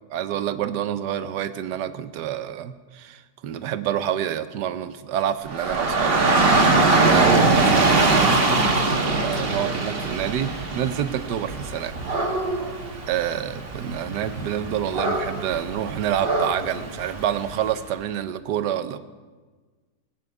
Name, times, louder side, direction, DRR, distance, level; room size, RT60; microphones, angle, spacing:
voice 1, 0.1-6.2 6.9-8.5 9.2-11.9 13.1-19.0, right 10 dB, 80° right, 11 dB, 1.4 m, -27 dB
Dog / Rain, 5.5-17.6, right 3 dB, 35° right, 1.4 m, -22 dB
24.5 x 9.1 x 4.8 m, 1.4 s
omnidirectional pair, 1.8 m